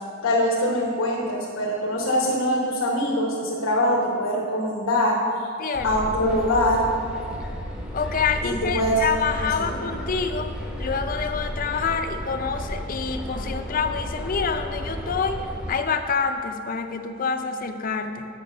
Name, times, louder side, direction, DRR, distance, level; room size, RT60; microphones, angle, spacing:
voice 1, 0.2-5.2 5.8-6.9 8.4-9.0 9.6-10.0, left 1 dB, 85° left, -3 dB, 1.0 m, -23 dB
voice 2, 5.6-5.9 7.9-10.5 10.8-18.3, left 5 dB, 45° left, 7 dB, 0.5 m, -27 dB
sound 1, 5.7-15.7, equal, 5° right, 0.8 m, -33 dB
7.1 x 5.8 x 6.2 m, 2.4 s
head